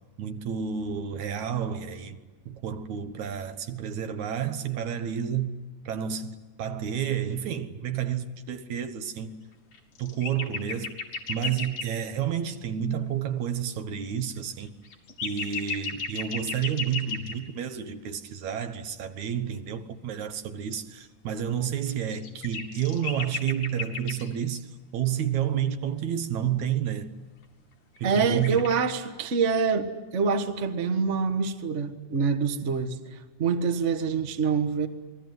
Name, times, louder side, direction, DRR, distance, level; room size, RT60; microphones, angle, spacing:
voice 1, 0.2-2.2 2.5-5.6 5.9-9.4 10.0-10.9 11.3-14.7 15.2-27.1 28.0-28.6, right 9 dB, 70° right, 2.5 m, -30 dB
sound 1, 9.7-11.9 14.4-14.5 14.7-17.3 21.9-24.3 28.0-28.9, left 5 dB, 70° left, 3.9 m, -34 dB
voice 2, 28.0-34.9, right 5 dB, 40° right, 1.1 m, -26 dB
28.5 x 21.0 x 9.5 m
omnidirectional pair, 3.7 m